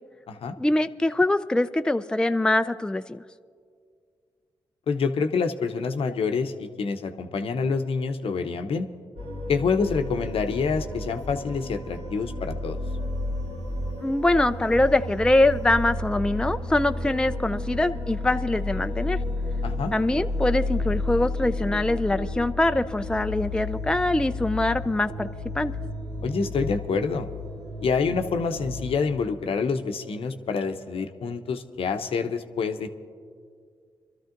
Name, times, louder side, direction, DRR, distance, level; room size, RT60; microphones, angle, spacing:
voice 1, 0.6-3.2 14.0-19.2 19.9-25.3 25.5-25.7, left 2 dB, 10° left, 10 dB, 0.4 m, -23 dB
voice 2, 4.9-8.9 9.5-12.8 19.6-19.9 26.2-27.3 27.8-32.9, left 5 dB, 70° left, 7 dB, 0.8 m, -27 dB
sound 1, 9.2-29.0, left 2 dB, 90° right, 2.3 m, -32 dB
27.0 x 13.0 x 2.6 m, 2.1 s
supercardioid pair, 45°, 10 cm